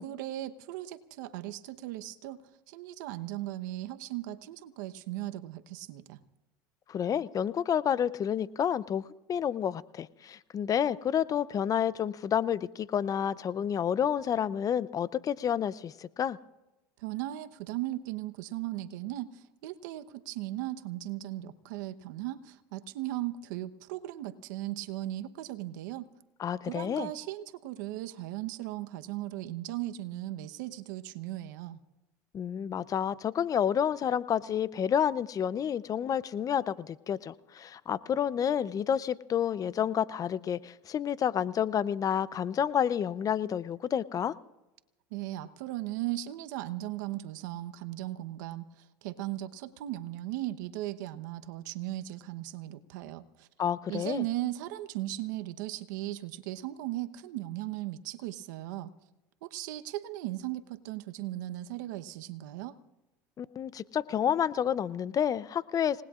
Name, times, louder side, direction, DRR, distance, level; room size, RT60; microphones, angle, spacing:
voice 1, 0.0-6.2 17.0-26.1 26.6-31.8 45.1-53.5 53.9-58.9 59.4-62.8, right 15 dB, 80° right, 10 dB, 1.0 m, -37 dB
voice 2, 6.9-16.4 26.4-27.1 32.3-44.3 53.6-54.2 63.4-66.0, left 9 dB, 35° left, 17 dB, 0.6 m, -29 dB
28.5 x 19.5 x 2.5 m, 1.0 s
supercardioid pair, 95°, 10 cm